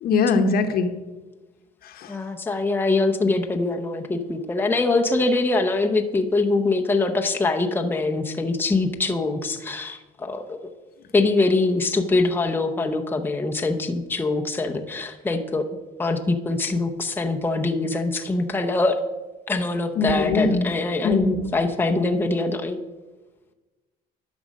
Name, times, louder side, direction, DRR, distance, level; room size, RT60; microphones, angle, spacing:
voice 1, 0.0-0.9 20.0-20.7 21.0-21.5, left 4 dB, 65° left, 8 dB, 1.0 m, -21 dB
voice 2, 2.1-10.6 11.1-15.6 16.0-19.0 19.5-22.8, left 3 dB, 10° left, 3 dB, 0.7 m, -23 dB
11.0 x 6.1 x 5.2 m, 1.2 s
cardioid pair, 110°, 17 cm